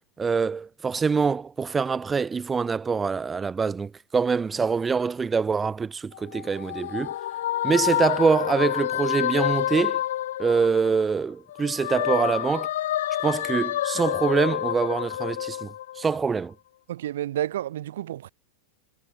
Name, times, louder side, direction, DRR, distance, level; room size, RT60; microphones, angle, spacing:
voice 1, 0.2-7.1 7.6-10.0 10.4-12.7 13.2-15.7 16.0-16.5, right 5 dB, 15° right, 1.3 m, -24 dB
sound 1, 6.1-11.1 11.5-16.3, left 13 dB, 60° left, 5.5 m, -28 dB
voice 2, 16.9-18.3, right 12 dB, 60° right, 5.9 m, -30 dB
figure-of-eight pair, 90°, 0 cm